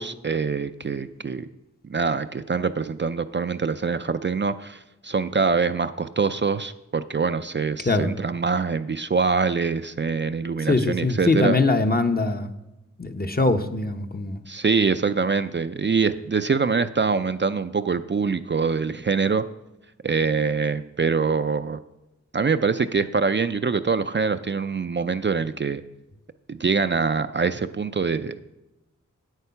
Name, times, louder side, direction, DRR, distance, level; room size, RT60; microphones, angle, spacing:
voice 1, 0.0-1.5 1.9-11.6 14.5-19.5 20.0-21.8 22.3-25.8 26.5-28.4, right 5 dB, 35° right, 10 dB, 0.4 m, -24 dB
voice 2, 10.6-12.5 13.0-14.4, left 3 dB, 30° left, 7 dB, 0.8 m, -22 dB
8.5 x 8.0 x 5.7 m, 0.97 s
cardioid pair, 45°, 31 cm